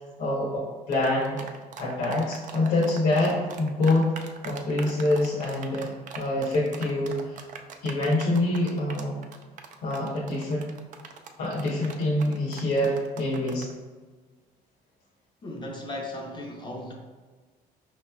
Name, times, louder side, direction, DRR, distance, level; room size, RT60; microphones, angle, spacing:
voice 1, 0.2-1.5 1.8-4.1 4.4-5.9 6.1-7.4 7.8-9.1 9.8-10.7 11.4-13.7, left 1 dB, 75° left, -5 dB, 0.9 m, -26 dB
sound 1, 0.9-13.7, right 6 dB, 50° right, 0.4 m, -42 dB
voice 2, 15.4-16.9, left 1 dB, 25° left, 0 dB, 0.6 m, -36 dB
4.9 x 3.0 x 2.3 m, 1.4 s
cardioid pair, 110°, 17 cm